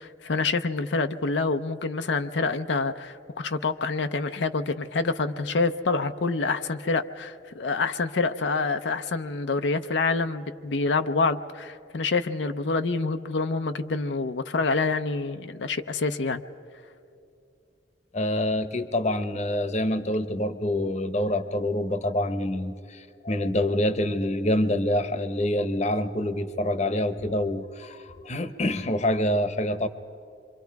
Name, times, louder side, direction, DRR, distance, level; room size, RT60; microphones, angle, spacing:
voice 1, 0.0-16.4, left 3 dB, 90° left, 8 dB, 0.6 m, -27 dB
voice 2, 18.1-29.9, left 1 dB, 40° left, 11 dB, 0.9 m, -26 dB
27.0 x 24.5 x 4.7 m, 2.6 s
head